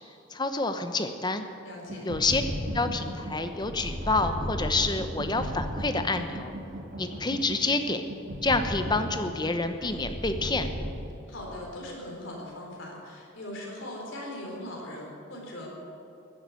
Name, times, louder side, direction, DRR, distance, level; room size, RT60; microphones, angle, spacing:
voice 1, 0.3-1.4 2.0-2.4 2.7-6.5 7.0-8.0 8.4-10.7, left 3 dB, 20° left, 8 dB, 0.8 m, -28 dB
voice 2, 1.6-2.1 11.3-15.8, left 1 dB, 75° left, -1 dB, 4.1 m, -40 dB
sound 1, 1.9-10.9, equal, 50° right, 3.3 m, -35 dB
15.5 x 9.6 x 8.4 m, 2.9 s
head